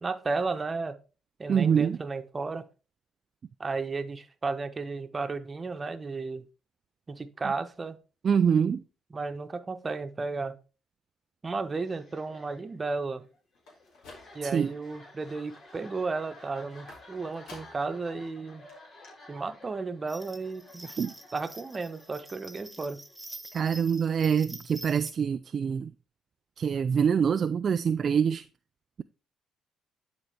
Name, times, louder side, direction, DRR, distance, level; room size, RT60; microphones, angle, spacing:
voice 1, 0.0-1.0 1.4-2.7 3.6-6.4 7.1-8.0 9.1-10.6 11.4-13.2 14.3-18.6 19.3-23.0, right 4 dB, 35° right, 1.0 m, -34 dB
voice 2, 1.5-2.0 8.2-8.8 14.4-14.7 21.0-21.1 23.5-25.9 26.6-28.4, right 7 dB, 50° right, 0.3 m, -25 dB
sound 1, 11.8-23.5, left 2 dB, 55° left, 3.9 m, -53 dB
sound 2, 13.6-14.7 15.1-15.6 16.9-18.0 18.3-18.4 18.7-18.8 19.0-19.1, left 3 dB, 70° left, 2.4 m, -51 dB
sound 3, 20.1-25.1, right 1 dB, 10° right, 0.9 m, -46 dB
11.0 x 4.0 x 3.4 m
hypercardioid pair, 50°, 0 cm